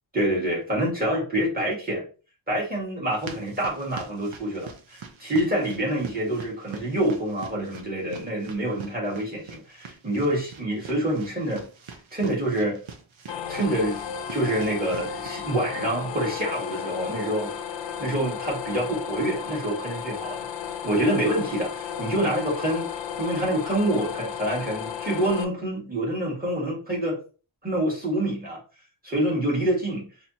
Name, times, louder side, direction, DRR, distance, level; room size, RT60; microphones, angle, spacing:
voice 1, 0.1-2.0 2.5-11.6 12.1-12.8 13.5-14.0 14.3-17.5 18.0-20.5 20.8-27.2 27.6-28.6 29.0-30.1, right 1 dB, 20° right, -5 dB, 2.0 m, -26 dB
sound 1, 3.1-15.4, right 5 dB, 80° right, 0.8 m, -44 dB
sound 2, 13.3-25.4, left 7 dB, 70° left, 0.5 m, -34 dB
3.9 x 2.9 x 2.9 m, 0.36 s
wide cardioid pair, 135°, 47 cm